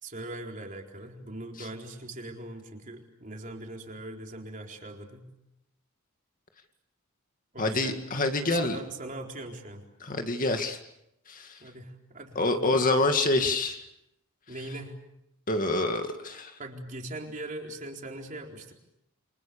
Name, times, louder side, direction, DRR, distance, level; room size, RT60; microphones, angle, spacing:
voice 1, 0.0-5.3 7.5-8.0 8.4-9.8 11.6-12.8 14.5-15.0 16.6-18.7, right 2 dB, 40° right, 2 dB, 4.2 m, -40 dB
voice 2, 7.6-8.8 10.0-10.8 11.3-11.6 12.4-13.8 15.5-16.5, left 2 dB, 40° left, 6 dB, 2.2 m, -26 dB
28.5 x 25.5 x 7.1 m, 0.83 s
head